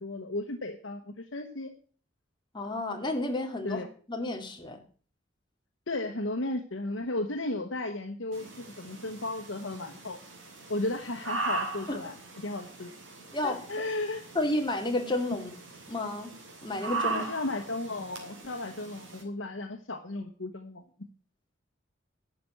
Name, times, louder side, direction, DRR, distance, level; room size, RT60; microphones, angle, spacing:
voice 1, 0.0-1.7 3.6-3.9 5.9-10.2 10.7-12.1 12.4-12.9 13.4-14.2 17.0-20.8, left 2 dB, 75° left, 5 dB, 1.2 m, -34 dB
voice 2, 2.5-3.8 4.1-4.8 11.9-12.0 13.3-13.6 14.3-15.5 15.9-16.3 16.6-17.2, left 1 dB, 25° left, 3 dB, 2.2 m, -31 dB
sound 1, 8.3-19.2, right 3 dB, 85° right, 3.8 m, -39 dB
11.5 x 6.9 x 7.6 m, 0.41 s
head